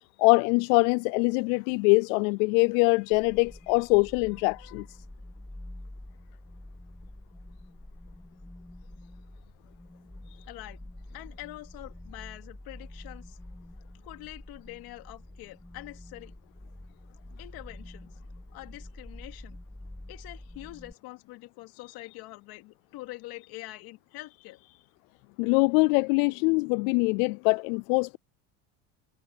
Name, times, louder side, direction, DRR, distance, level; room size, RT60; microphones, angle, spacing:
voice 1, 0.2-5.0 25.4-28.2, left 29 dB, 85° left, 0.5 m, -23 dB
sound 1, 3.1-20.9, left 1 dB, 5° left, 2.0 m, -47 dB
voice 2, 4.5-4.8 10.4-10.8 11.1-13.4 14.0-16.3 17.4-18.2 18.5-19.6 20.1-24.9, left 19 dB, 65° left, 2.6 m, -45 dB
cardioid pair, 150°, 40 cm